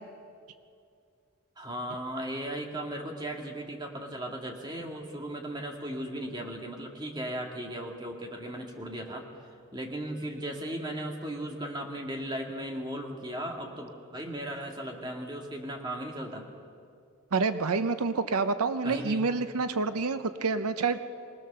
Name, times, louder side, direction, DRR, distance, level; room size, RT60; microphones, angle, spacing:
voice 1, 1.6-9.2 9.7-16.5 18.8-19.2, right 1 dB, 20° right, 1 dB, 2.0 m, -36 dB
voice 2, 17.3-21.0, right 4 dB, 85° right, 11 dB, 0.7 m, -28 dB
24.0 x 19.0 x 6.8 m, 2.4 s
head